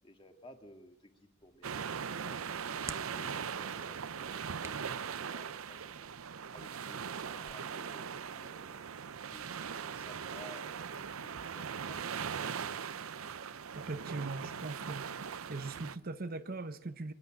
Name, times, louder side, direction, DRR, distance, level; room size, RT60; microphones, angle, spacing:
voice 1, 0.0-2.4 2.9-6.0 6.3-8.7 9.3-12.9, left 1 dB, 25° left, 2.0 m, -56 dB
Hands, 1.4-9.8, right 4 dB, 15° right, 0.6 m, -55 dB
sound 1, 1.6-16.0, right 7 dB, 80° right, 0.7 m, -40 dB
voice 2, 13.7-15.1 15.5-17.1, right 3 dB, 45° right, 0.8 m, -40 dB
24.5 x 12.0 x 9.0 m
head